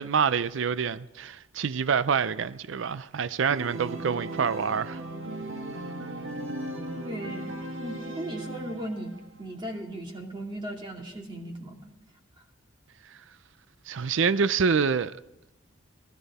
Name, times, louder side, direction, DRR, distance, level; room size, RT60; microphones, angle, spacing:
voice 1, 0.0-5.0 13.9-15.2, right 6 dB, 65° right, 0.5 m, -26 dB
Organ, 3.5-9.2, right 1 dB, 80° right, 1.7 m, -37 dB
voice 2, 6.9-7.5 7.8-9.1 9.4-11.9, right 1 dB, 25° right, 2.3 m, -37 dB
20.0 x 13.0 x 4.1 m
head